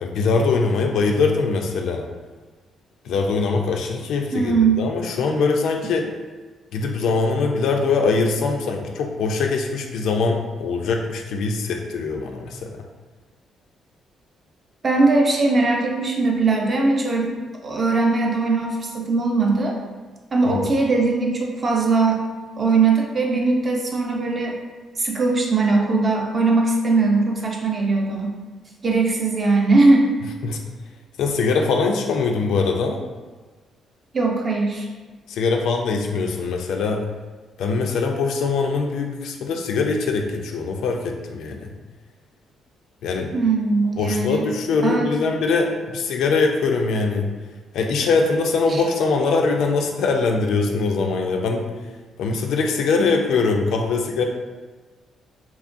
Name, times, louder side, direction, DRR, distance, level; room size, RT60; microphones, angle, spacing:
voice 1, 0.0-2.1 3.0-6.1 6.7-12.9 20.5-20.7 30.4-30.6 31.2-33.0 35.3-37.0 37.6-41.7 43.0-43.3 44.0-47.3 47.7-51.7 52.2-54.2, left 4 dB, 80° left, 2 dB, 0.3 m, -22 dB
voice 2, 4.3-4.9 14.8-19.8 20.3-22.2 22.6-24.6 25.0-28.4 28.8-30.1 34.1-34.9 43.3-44.5 44.8-45.1 48.7-48.8, right 3 dB, 40° right, 0 dB, 0.5 m, -20 dB
2.9 x 2.3 x 2.5 m, 1.3 s
cardioid pair, 90°, 0 cm